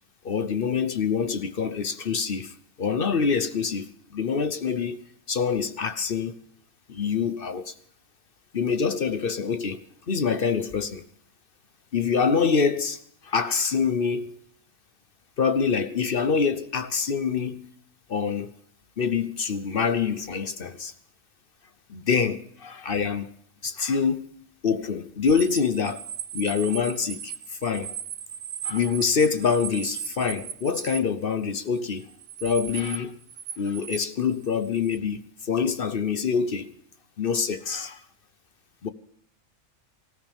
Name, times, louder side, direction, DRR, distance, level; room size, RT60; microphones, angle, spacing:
voice 1, 0.2-5.0 5.3-6.4 6.9-7.7 8.5-11.0 11.9-14.4 15.4-17.7 18.1-18.5 19.0-20.9 21.9-23.3 23.6-24.3 24.6-26.0 26.3-27.9 28.6-32.1 32.4-33.2 33.6-36.7 37.2-38.0 38.8-38.9, left 6 dB, 50° left, 1.0 m, -26 dB
sound 1, 25.3-31.0 31.8-33.0 33.2-35.0, right 9 dB, 75° right, 1.1 m, -37 dB
18.5 x 15.5 x 3.5 m
omnidirectional pair, 1.4 m